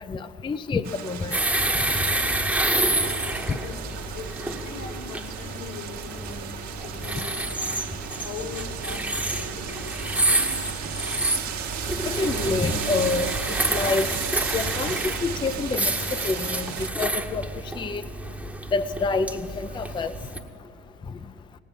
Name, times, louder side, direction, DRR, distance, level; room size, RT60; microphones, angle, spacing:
voice 1, 0.1-1.4 3.5-3.6 12.0-14.1 14.5-17.4 17.7-18.0 18.7-20.1, left 4 dB, 15° left, 12 dB, 0.5 m, -27 dB
sound 1, 0.8-16.9, right 8 dB, 55° right, 1.3 m, -35 dB
sound 2, 1.3-20.4, right 1 dB, 5° right, 1.0 m, -29 dB
voice 2, 3.2-7.9 8.2-10.5, left 5 dB, 80° left, -1 dB, 2.7 m, -41 dB
17.5 x 8.9 x 8.5 m, 2.9 s
hypercardioid pair, 70°, 34 cm